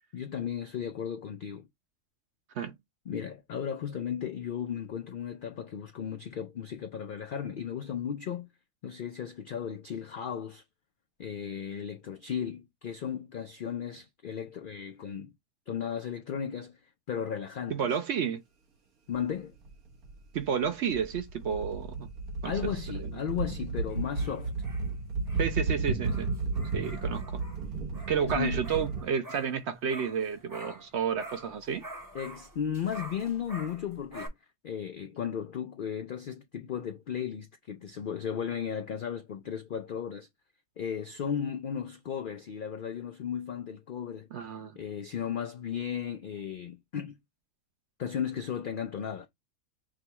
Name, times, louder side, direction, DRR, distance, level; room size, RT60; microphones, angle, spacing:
voice 1, 0.1-1.7 3.1-8.5 8.8-10.6 11.2-15.3 15.7-16.8 17.1-17.9 19.1-19.5 22.4-24.5 28.2-28.6 32.1-34.3 34.6-40.3 40.8-47.2 48.0-49.3, left 8 dB, 80° left, 0.4 m, -35 dB
voice 2, 17.7-18.4 20.3-22.1 22.4-22.7 23.0-23.1 25.4-26.3 26.7-27.4 28.1-31.9 44.3-44.7, right 7 dB, 65° right, 0.7 m, -31 dB
sound 1, 19.1-19.2 19.6-29.0, right 3 dB, 85° right, 1.7 m, -33 dB
sound 2, 23.9-30.9 31.2-34.3, right 1 dB, 20° right, 0.6 m, -47 dB
6.0 x 2.3 x 2.9 m
omnidirectional pair, 1.5 m